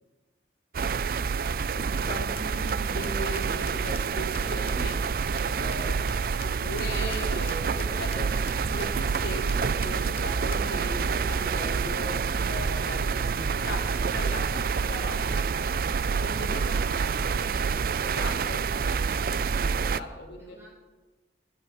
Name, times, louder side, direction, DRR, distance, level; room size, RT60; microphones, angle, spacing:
sound 1, 0.7-20.0, right 5 dB, 55° right, 0.4 m, -27 dB
voice 1, 1.9-5.0 5.5-8.3 8.7-12.1 12.5-15.5 16.2-17.0 18.0-18.6 19.8-20.6, left 1 dB, 85° left, 0 dB, 3.1 m, -38 dB
sound 2, 2.4-10.7, left 9 dB, 35° left, 0.5 m, -47 dB
voice 2, 16.5-17.5 19.6-20.7, equal, 15° right, -7 dB, 6.0 m, -50 dB
14.0 x 11.0 x 6.5 m, 1.2 s
head